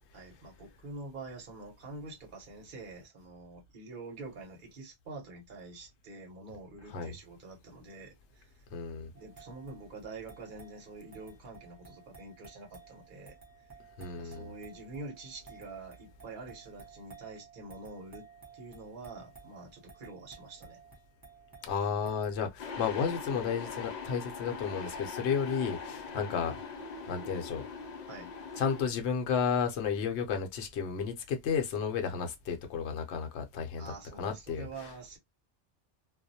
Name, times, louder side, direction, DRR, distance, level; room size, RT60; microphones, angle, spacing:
voice 1, 0.1-8.5 9.1-13.4 14.2-18.2 18.5-20.8 28.1-28.3 33.8-35.2, right 3 dB, 50° right, 1.0 m, -46 dB
voice 2, 8.7-9.1 14.0-14.5 21.6-26.5 27.1-27.7 28.6-33.9 34.2-34.9, left 6 dB, 70° left, 0.9 m, -32 dB
sound 1, 9.2-22.5, right 5 dB, 25° right, 0.6 m, -55 dB
sound 2, 22.6-28.9, left 5 dB, 55° left, 0.5 m, -42 dB
2.3 x 2.0 x 2.6 m
omnidirectional pair, 1.2 m